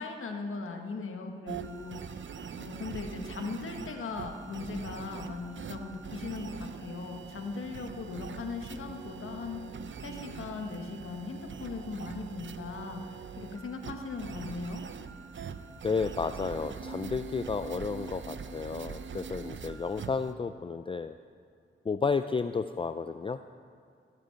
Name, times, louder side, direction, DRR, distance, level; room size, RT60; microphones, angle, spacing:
voice 1, 0.0-2.2 2.6-9.6 10.0-14.8, left 4 dB, 80° left, 4 dB, 1.4 m, -39 dB
sound 1, 1.5-20.3, right 6 dB, 65° right, 0.7 m, -43 dB
voice 2, 15.8-21.1 21.9-23.4, left 5 dB, 25° left, 10 dB, 0.4 m, -32 dB
17.5 x 7.8 x 5.8 m, 2.4 s
cardioid pair, 60°, 21 cm